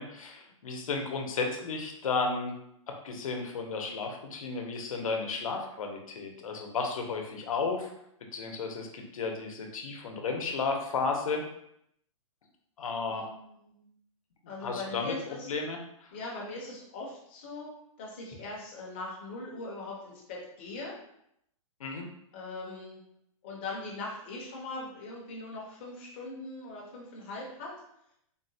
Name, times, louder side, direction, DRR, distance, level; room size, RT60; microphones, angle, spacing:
voice 1, 0.0-2.5 3.0-7.9 8.3-11.4 12.8-13.2 14.6-15.8 21.8-22.1, left 4 dB, 75° left, 3 dB, 0.7 m, -33 dB
voice 2, 13.1-13.9 14.5-15.5 16.1-17.7 18.0-21.0 22.3-23.0 23.4-27.7, left 2 dB, 20° left, -3 dB, 0.5 m, -40 dB
3.8 x 2.1 x 2.6 m, 0.75 s
hypercardioid pair, 180°, 17 cm